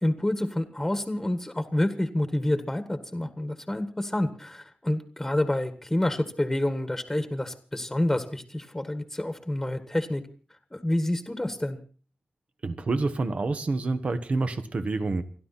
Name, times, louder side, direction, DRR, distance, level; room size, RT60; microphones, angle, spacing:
voice 1, 0.0-10.2 10.7-11.8, left 1 dB, 10° left, 9 dB, 1.6 m, -28 dB
voice 2, 12.6-15.2, right 3 dB, 45° right, 10 dB, 1.5 m, -28 dB
29.5 x 11.5 x 4.3 m, 0.39 s
wide cardioid pair, 130°, 3 cm